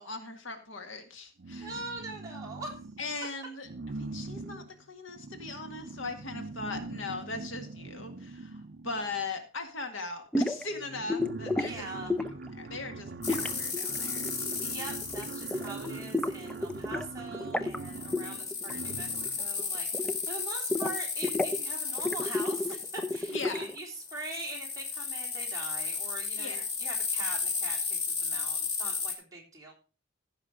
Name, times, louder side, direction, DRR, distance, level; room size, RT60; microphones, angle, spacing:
voice 1, 0.0-1.7 3.0-3.7 4.0-11.9 12.5-14.3 23.3-23.7 26.4-26.6, left 3 dB, 80° left, 6 dB, 1.9 m, -39 dB
sound 1, 1.4-3.2 3.6-9.3 10.3-10.4 10.6-19.5, right 3 dB, 55° right, 0.6 m, -42 dB
voice 2, 1.6-2.7 11.6-12.1 14.6-29.7, right 2 dB, 15° right, -2 dB, 3.5 m, -42 dB
sound 2, 10.3-10.6 11.1-11.7 12.1-12.5 13.3-14.7 15.0-15.2 15.5-17.1 17.3-17.8 18.1-19.0 19.3-20.4 20.7-21.6 22.0-23.8, left 2 dB, 5° left, 0.5 m, -31 dB
sound 3, 13.2-16.6 17.7-29.1, left 5 dB, 55° left, 2.6 m, -34 dB
15.0 x 5.7 x 4.9 m, 0.33 s
head